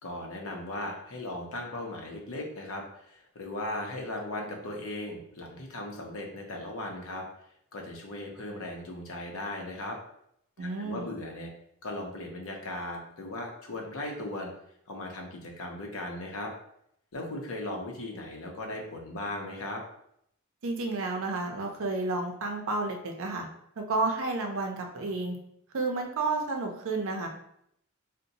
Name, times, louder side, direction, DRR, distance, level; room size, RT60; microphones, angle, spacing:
voice 1, 0.0-7.2 7.7-10.0 10.6-11.5 11.8-14.5 14.9-16.5 17.1-19.8, left 1 dB, 65° left, 1 dB, 0.7 m, -37 dB
voice 2, 10.6-11.1 20.6-23.4 23.8-25.3 25.7-27.3, right 3 dB, 65° right, 3 dB, 0.6 m, -31 dB
2.6 x 2.2 x 3.9 m, 0.73 s
head